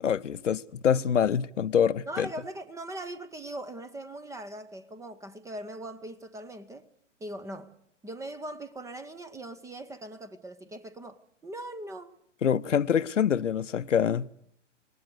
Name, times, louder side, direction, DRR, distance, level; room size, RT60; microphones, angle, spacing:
voice 1, 0.0-2.3 12.4-14.3, left 8 dB, 75° left, 0.8 m, -25 dB
voice 2, 2.1-6.9 7.2-7.7 8.0-12.1, right 1 dB, 10° right, 0.8 m, -40 dB
27.5 x 19.0 x 6.7 m
figure-of-eight pair, 110°, 37 cm